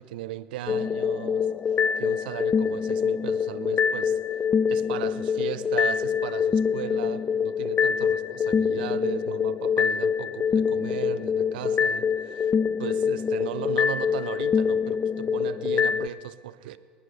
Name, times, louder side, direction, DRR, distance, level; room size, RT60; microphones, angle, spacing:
voice 1, 0.0-1.5 2.0-4.2 4.7-12.5 12.8-16.8, right 14 dB, 75° right, 0.5 m, -36 dB
sound 1, 0.7-16.1, left 7 dB, 30° left, 0.3 m, -25 dB
26.0 x 9.4 x 3.3 m
hypercardioid pair, 75°, 5 cm